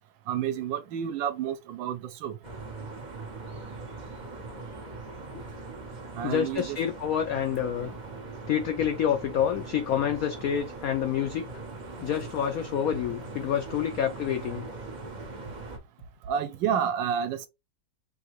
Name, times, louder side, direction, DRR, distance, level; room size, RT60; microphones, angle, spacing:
voice 1, 0.3-2.4 6.1-6.8 7.8-7.9 16.3-17.5, right 8 dB, 75° right, 1.4 m, -30 dB
sound 1, 2.4-15.8, right 3 dB, 55° right, 0.5 m, -41 dB
voice 2, 6.2-7.9 8.5-11.4 12.0-14.6, left 9 dB, 80° left, 0.7 m, -28 dB
5.2 x 2.7 x 3.0 m
omnidirectional pair, 2.1 m